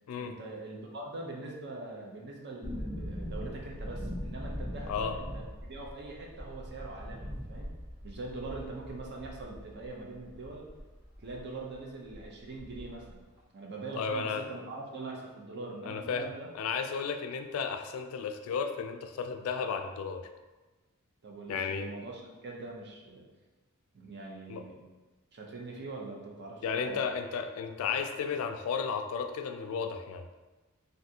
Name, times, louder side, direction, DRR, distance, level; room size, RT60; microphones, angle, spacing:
voice 1, 0.2-7.7 8.0-10.6 11.2-13.2 13.5-16.5 21.2-23.3 23.9-24.8 25.3-27.0, right 3 dB, 55° right, -1 dB, 0.6 m, -43 dB
sound 1, 2.6-11.5 11.7-11.8 12.1-13.1 13.4-13.5, equal, 15° right, 0.7 m, -41 dB
voice 2, 4.9-5.2 14.0-14.4 15.9-16.2 16.5-20.3 21.5-21.9 24.5-24.6 26.6-30.3, left 6 dB, 75° left, 6 dB, 0.3 m, -33 dB
3.4 x 2.6 x 2.7 m, 1.2 s
head